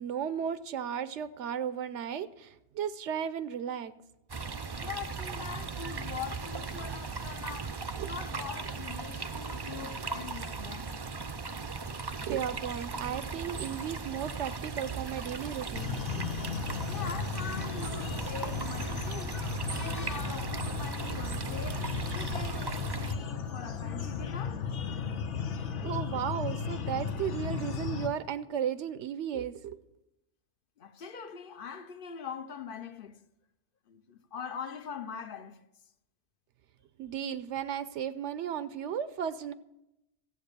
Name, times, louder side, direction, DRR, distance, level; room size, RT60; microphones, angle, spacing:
voice 1, 0.0-3.9 5.8-6.0 8.0-8.1 12.2-16.0 16.4-16.5 25.8-29.8 37.0-39.5, right 8 dB, 80° right, 0.9 m, -35 dB
sound 1, 4.3-23.1, right 4 dB, 35° right, 0.4 m, -37 dB
voice 2, 4.8-7.8 8.0-11.1 16.9-24.7 30.8-33.2 33.9-35.6, left 7 dB, 55° left, 0.9 m, -42 dB
sound 2, 15.7-28.1, left 6 dB, 90° left, 1.3 m, -35 dB
14.0 x 8.0 x 6.7 m
omnidirectional pair, 1.2 m